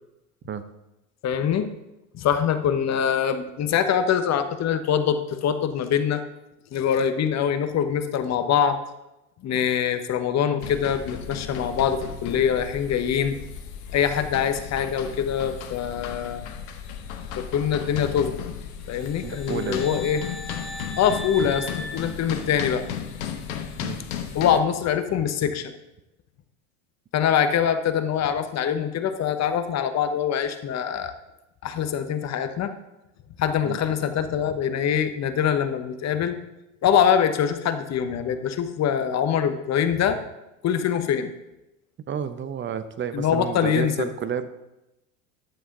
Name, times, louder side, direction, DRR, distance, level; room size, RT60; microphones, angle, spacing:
voice 1, 1.2-1.7 2.1-6.2 6.7-8.8 9.4-13.4 13.9-16.4 17.4-18.5 18.9-20.2 21.0-22.8 24.3-25.7 27.1-31.1 31.6-32.7 33.4-36.4 36.8-40.2 40.6-41.3 43.1-44.1, left 8 dB, 40° left, 10 dB, 1.0 m, -24 dB
sound 1, 10.6-24.6, left 8 dB, 70° left, 1.2 m, -35 dB
sound 2, 19.0-23.0, left 1 dB, ahead, 0.4 m, -39 dB
voice 2, 19.2-19.8 23.8-24.0 33.6-33.8 42.1-44.5, right 7 dB, 25° right, 11 dB, 0.8 m, -30 dB
11.5 x 7.3 x 3.9 m, 0.94 s
hypercardioid pair, 80°, 43 cm